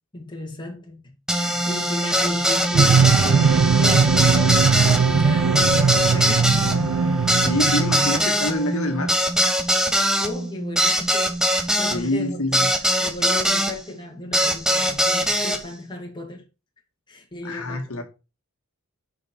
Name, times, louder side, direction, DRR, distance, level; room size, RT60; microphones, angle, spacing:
voice 1, 0.1-6.5 7.6-7.7 10.0-12.4 13.0-16.5 17.1-18.0, left 2 dB, 20° left, 2.2 m, -35 dB
sound 1, 1.3-13.7 14.3-15.6, equal, 5° right, 1.0 m, -22 dB
sound 2, 2.7-8.1, right 6 dB, 70° right, 0.4 m, -19 dB
voice 2, 7.3-9.2 11.9-12.7 17.4-18.0, left 1 dB, 70° left, 1.6 m, -26 dB
7.4 x 5.7 x 4.4 m
head